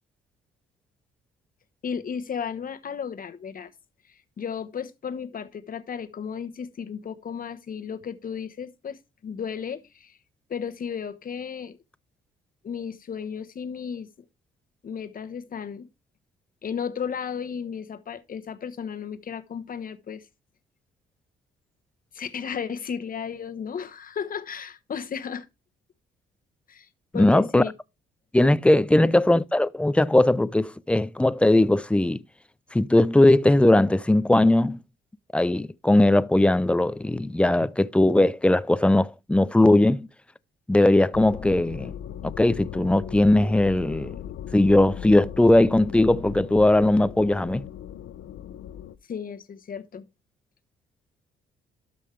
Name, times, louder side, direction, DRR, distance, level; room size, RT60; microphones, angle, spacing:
voice 1, 1.8-3.7 4.4-10.1 10.5-11.8 12.6-14.1 14.8-15.9 16.6-20.2 22.1-25.5 26.7-26.9 27.1-27.7 28.9-29.2 49.1-50.1, left 7 dB, 45° left, 1.1 m, -34 dB
voice 2, 27.1-27.6 28.3-32.2 32.7-34.8 35.3-40.1 40.7-41.9 42.4-44.1 44.5-47.6, left 1 dB, 5° left, 0.4 m, -19 dB
sound 1, 41.1-49.0, left 9 dB, 75° left, 0.7 m, -38 dB
12.5 x 5.5 x 3.3 m
cardioid pair, 90°, 20 cm